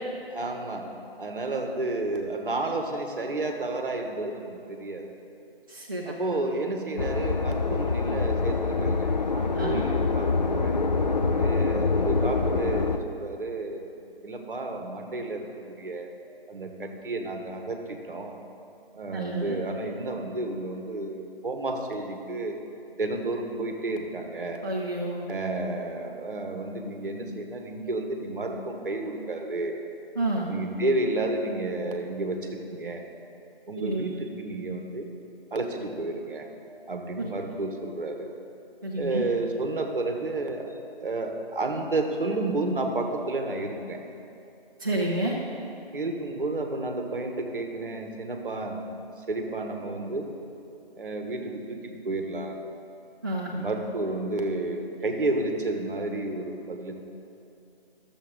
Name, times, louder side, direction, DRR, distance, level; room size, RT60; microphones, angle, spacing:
voice 1, 0.3-0.9 1.2-5.1 6.0-10.8 11.4-13.9 14.2-16.1 16.5-18.4 18.9-22.6 23.0-24.6 25.3-29.7 30.5-33.0 33.7-35.1 35.5-36.5 36.9-38.3 39.0-40.7 41.0-44.0 45.9-48.8 49.2-50.3 51.0-52.6 53.5-56.9, right 2 dB, 60° right, 4 dB, 1.2 m, -31 dB
voice 2, 5.7-6.2 9.5-9.9 19.1-19.6 24.6-25.3 30.2-30.5 33.8-34.0 37.2-37.3 38.8-39.2 44.8-45.3 53.2-53.6, right 1 dB, 20° right, -5 dB, 0.5 m, -29 dB
sound 1, 7.0-13.0, left 4 dB, 45° left, 0.4 m, -25 dB
12.0 x 7.1 x 3.8 m, 2.7 s
figure-of-eight pair, 155°, 31 cm